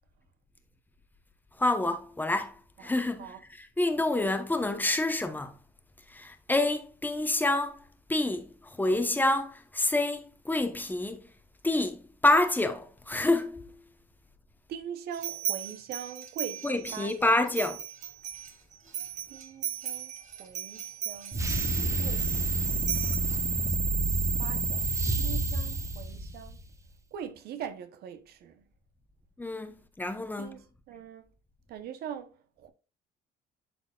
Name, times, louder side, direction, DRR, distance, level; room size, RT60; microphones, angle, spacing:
voice 1, 1.6-2.5 2.8-5.5 6.1-7.8 8.1-8.5 8.8-11.2 11.6-13.7 16.6-17.8 29.4-30.6, left 2 dB, 10° left, 0.9 m, -28 dB
voice 2, 14.7-17.4 19.3-20.1 20.4-21.5 22.0-22.3 22.7-23.0 24.4-24.9 25.2-26.6 27.1-28.6 30.4-31.3 31.7-32.7, right 8 dB, 70° right, 0.8 m, -42 dB
sound 1, 15.1-17.1 17.5-23.2, right 10 dB, 45° right, 1.4 m, -37 dB
sound 2, 21.3-26.7, right 3 dB, 20° right, 0.8 m, -28 dB
11.5 x 4.3 x 2.3 m
cardioid pair, 110°, 17 cm